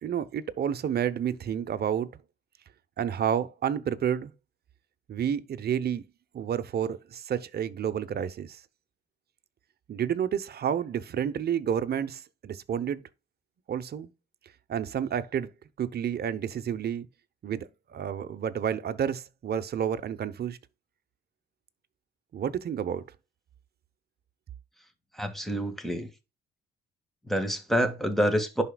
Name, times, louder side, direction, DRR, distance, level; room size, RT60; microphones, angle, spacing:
voice 1, 0.0-2.1 3.0-4.3 5.1-6.0 6.3-8.6 9.9-13.0 13.7-14.1 14.7-15.5 15.8-17.1 17.4-20.6 22.3-23.0, right 9 dB, 55° right, 0.9 m, -30 dB
voice 2, 25.2-26.1 27.3-28.6, equal, ahead, 1.9 m, -27 dB
11.0 x 4.3 x 2.3 m
cardioid pair, 90°, 20 cm